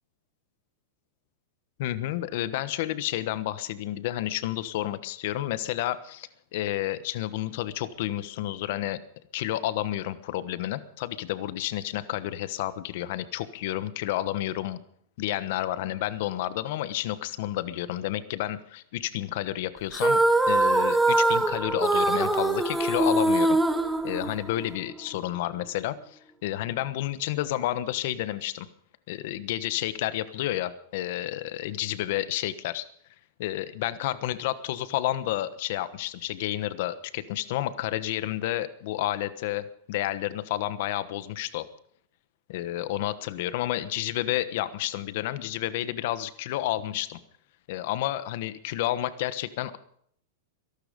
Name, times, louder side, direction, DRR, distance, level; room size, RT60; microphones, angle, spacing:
voice 1, 1.8-9.0 9.3-14.8 15.2-20.2 20.5-23.6 24.0-28.7 29.1-32.8 33.4-41.7 42.5-47.2 47.7-49.8, left 14 dB, 60° left, 14 dB, 1.2 m, -30 dB
sound 1, 19.9-24.8, right 2 dB, 5° right, 1.0 m, -23 dB
23.0 x 12.0 x 5.2 m, 0.67 s
supercardioid pair, 150°, 0 cm